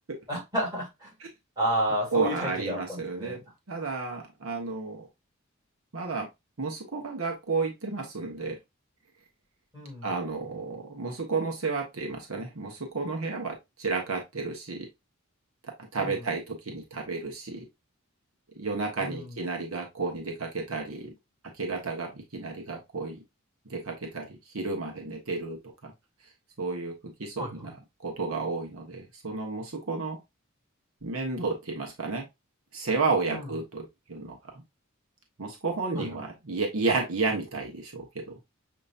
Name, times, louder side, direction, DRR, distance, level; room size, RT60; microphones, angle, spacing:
voice 1, 0.3-1.1 1.6-3.4 9.7-10.1 16.0-16.3 19.0-19.4 27.4-27.7 33.3-33.5 35.9-36.2, equal, 20° right, 3.0 m, -31 dB
voice 2, 2.1-3.4 3.7-5.1 5.9-6.3 6.6-8.6 10.0-14.9 15.6-17.6 18.6-21.1 21.6-23.2 23.6-25.9 26.6-26.9 27.2-30.2 31.0-32.3 32.7-34.6 35.4-38.4, right 3 dB, 90° right, 1.2 m, -32 dB
6.8 x 3.0 x 2.5 m
head